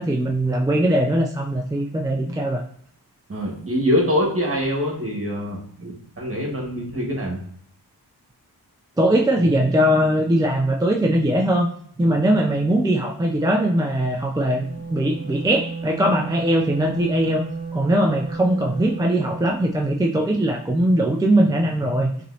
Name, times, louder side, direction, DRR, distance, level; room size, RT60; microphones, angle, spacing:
voice 1, 0.0-2.6 9.0-11.7 12.0-17.5 17.7-22.1, right 1 dB, 10° right, 1 dB, 0.3 m, -20 dB
voice 2, 3.3-7.4, equal, 35° right, -1 dB, 1.5 m, -24 dB
Wind instrument woodwind instrument, 14.3-19.5, right 4 dB, 25° left, 1.2 m, -33 dB
5.2 x 3.1 x 2.7 m, 0.66 s
wide cardioid pair, 80°, 40 cm